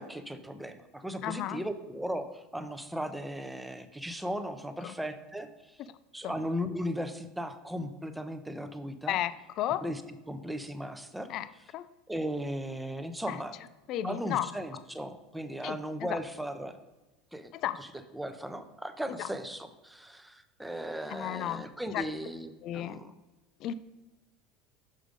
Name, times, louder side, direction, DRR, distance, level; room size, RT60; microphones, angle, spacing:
voice 1, 0.0-5.8 6.1-9.2 9.8-10.0 10.3-11.3 12.1-13.5 14.0-16.8 17.3-17.9 18.1-23.1, equal, 5° right, 8 dB, 0.5 m, -37 dB
voice 2, 1.2-1.6 4.8-4.9 6.2-6.4 9.1-9.8 11.3-11.5 11.7-11.9 13.3-13.4 13.9-14.5 15.6-16.2 17.5-17.8 19.2-19.3 21.1-21.6 21.9-22.0 22.6-23.0 23.6-23.7, left 12 dB, 45° left, 15 dB, 0.3 m, -33 dB
6.4 x 4.9 x 5.1 m, 1.1 s
supercardioid pair, 145°, 0 cm